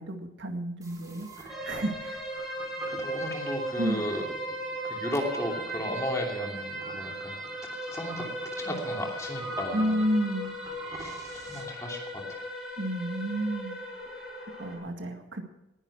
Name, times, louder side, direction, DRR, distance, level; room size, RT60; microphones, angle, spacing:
voice 1, 0.0-2.2 3.8-4.0 9.7-10.5 12.8-13.8 14.6-15.4, equal, 85° right, 4 dB, 2.0 m, -31 dB
sound 1, 0.8-11.6, right 2 dB, 20° right, 3.4 m, -45 dB
Stretched-Shortened-door, 1.5-14.8, right 1 dB, ahead, 6.3 m, -37 dB
voice 2, 2.9-4.2 4.8-7.4 7.9-8.2 8.6-10.0 11.0-11.1 11.5-12.4, left 1 dB, 15° left, 0 dB, 2.8 m, -34 dB
19.0 x 11.0 x 4.9 m, 0.90 s
head